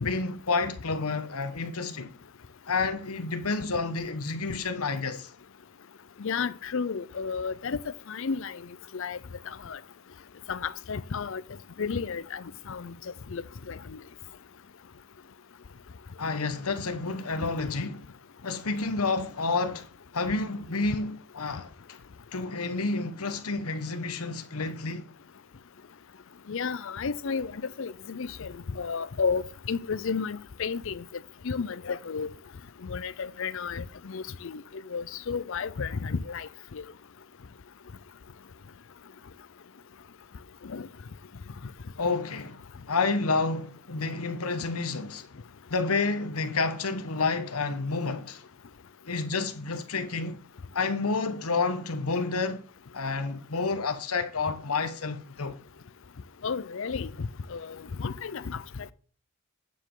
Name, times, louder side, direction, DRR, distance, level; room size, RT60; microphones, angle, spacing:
voice 1, 0.0-2.1 2.7-5.3 16.2-18.1 18.4-22.0 22.3-25.1 42.0-42.6 42.9-45.2 45.7-48.4 49.1-50.4 50.7-52.6 52.9-55.6, left 3 dB, 80° left, 1.2 m, -29 dB
voice 2, 6.2-7.8 8.1-8.6 8.9-9.2 9.7-9.8 10.5-11.4 11.8-12.9 13.3-13.4 13.7-13.8 26.5-31.0 31.4-32.3 32.8-34.6 34.9-36.8 40.6-40.9 56.4-58.6, left 5 dB, 60° left, 0.5 m, -32 dB
8.8 x 7.4 x 3.8 m
head